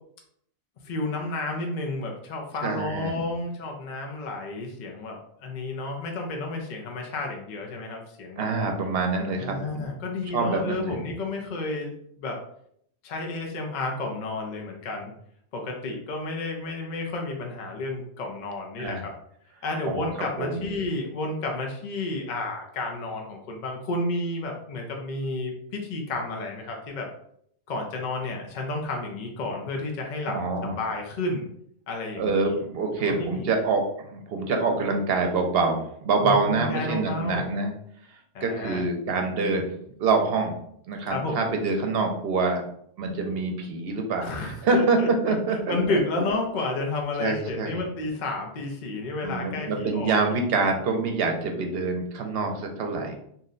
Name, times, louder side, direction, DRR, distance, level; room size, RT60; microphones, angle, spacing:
voice 1, 0.8-8.5 9.3-12.4 13.0-15.1 15.5-19.1 19.6-27.1 27.7-30.4 30.6-31.5 31.9-32.6 32.9-33.5 36.2-37.5 38.3-38.8 41.1-41.4 44.2-50.4, left 2 dB, 55° left, 1 dB, 0.6 m, -31 dB
voice 2, 2.6-3.2 8.4-9.9 10.3-11.0 18.8-19.1 19.9-20.1 20.4-20.7 30.3-30.8 32.2-37.7 38.4-39.7 40.0-40.5 40.9-42.6 43.0-46.2 47.2-47.9 49.2-53.2, right 3 dB, 70° right, 3 dB, 0.8 m, -26 dB
2.7 x 2.1 x 3.7 m, 0.69 s
omnidirectional pair, 1.1 m